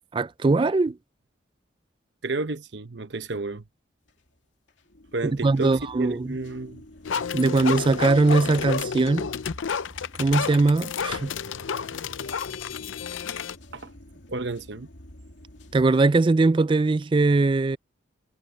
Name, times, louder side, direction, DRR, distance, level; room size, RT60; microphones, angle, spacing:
voice 1, 0.1-1.0 5.4-6.3 7.3-9.3 10.2-11.3 15.7-17.8, right 3 dB, 25° right, 0.3 m, -21 dB
voice 2, 2.2-3.6 5.1-6.8 13.7-13.9 14.3-14.9, right 3 dB, 60° right, 1.0 m, -31 dB
sound 1, 4.1-4.4 4.7-15.9, left 1 dB, 70° left, 2.7 m, -49 dB
sound 2, 7.0-13.6, left 6 dB, 90° left, 0.6 m, -30 dB
head